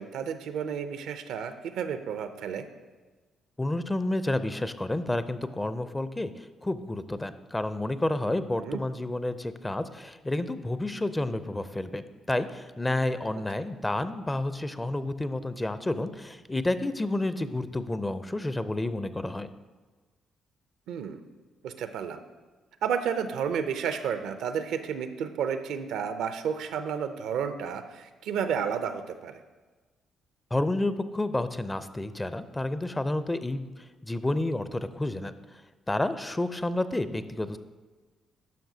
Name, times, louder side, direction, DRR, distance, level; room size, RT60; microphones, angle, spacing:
voice 1, 0.0-2.7 8.6-8.8 20.9-21.2 21.6-22.2 22.8-29.4, right 7 dB, 75° right, 10 dB, 0.4 m, -31 dB
voice 2, 3.6-19.5 30.5-35.3 35.9-37.6, left 2 dB, 20° left, 12 dB, 0.5 m, -30 dB
11.5 x 5.7 x 2.7 m, 1.3 s
supercardioid pair, 60°, 0 cm